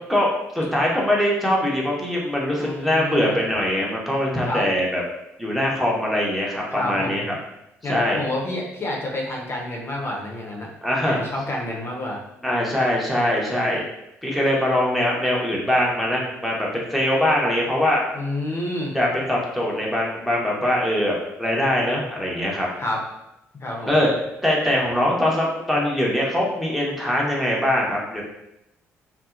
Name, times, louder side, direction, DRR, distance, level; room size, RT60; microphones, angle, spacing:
voice 1, 0.5-5.0 5.4-7.4 7.9-8.2 10.8-11.2 12.4-13.8 14.2-18.0 18.9-22.7 23.9-24.1 24.4-28.2, left 1 dB, ahead, -4 dB, 0.8 m, -22 dB
voice 2, 2.5-3.4 4.5-4.7 6.7-7.3 7.8-10.7 11.0-12.2 18.1-18.9 22.8-23.0 23.5-23.9, left 1 dB, 35° left, -1 dB, 0.6 m, -29 dB
2.7 x 2.0 x 2.4 m, 0.86 s
figure-of-eight pair, 45°, 7 cm